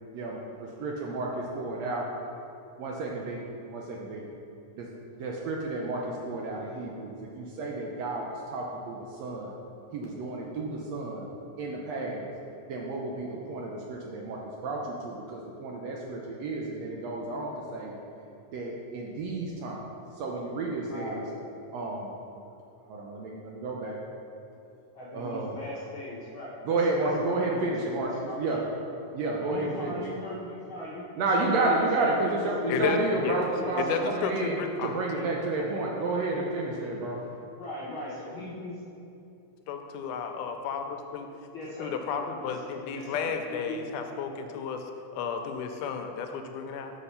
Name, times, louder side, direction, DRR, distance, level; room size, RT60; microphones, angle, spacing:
voice 1, 0.1-2.1 2.8-3.4 3.7-4.2 4.8-4.9 5.2-8.2 8.5-9.5 9.9-11.3 11.6-12.3 12.7-18.0 18.5-19.8 20.2-21.2 21.7-22.2 22.9-24.0 25.1-25.7 26.6-28.6 29.1-30.0 31.2-37.3, right 2 dB, 75° right, -1 dB, 1.6 m, -31 dB
voice 2, 20.8-21.3 24.9-28.4 29.4-33.0 33.6-34.1 35.1-35.3 37.6-38.8 41.5-41.9 42.4-42.6 42.9-43.8, left 2 dB, 70° left, -7 dB, 1.2 m, -38 dB
voice 3, 33.9-34.9 39.7-41.3 41.8-44.8 45.1-46.9, left 6 dB, 85° left, 5 dB, 2.1 m, -32 dB
6.6 x 5.3 x 5.6 m, 2.8 s
omnidirectional pair, 3.6 m